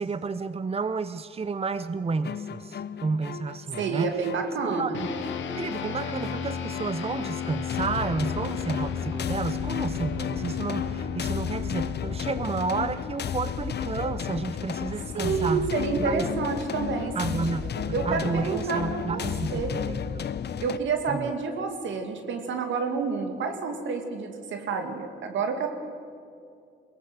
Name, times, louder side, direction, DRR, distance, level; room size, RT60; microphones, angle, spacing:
voice 1, 0.0-4.2 4.6-5.1 5.6-15.7 16.0-16.3 17.1-17.6 18.0-20.3 21.1-21.3, right 4 dB, 30° right, 13 dB, 0.8 m, -31 dB
sound 1, 2.2-20.8, left 8 dB, 60° left, 0.8 m, -34 dB
voice 2, 3.8-5.1 15.1-19.2 19.5-19.7 20.6-25.7, right 5 dB, 85° right, 5 dB, 2.3 m, -29 dB
sound 2, 4.9-14.6, left 7 dB, 85° left, 2.0 m, -34 dB
22.0 x 17.5 x 8.0 m, 2.4 s
cardioid pair, 60°, 19 cm